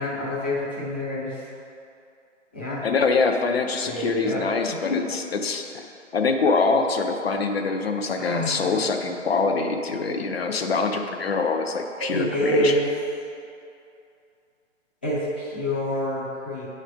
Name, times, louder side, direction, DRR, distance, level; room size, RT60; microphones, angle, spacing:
voice 1, 0.0-1.4 2.5-2.8 3.8-4.4 4.7-5.0 8.1-8.8 12.0-12.9 15.0-16.7, equal, 10° left, -10 dB, 0.5 m, -27 dB
voice 2, 2.8-5.9 6.1-12.7, left 4 dB, 50° left, 4 dB, 0.7 m, -24 dB
8.9 x 3.2 x 5.0 m, 2.5 s
figure-of-eight pair, 145°, 38 cm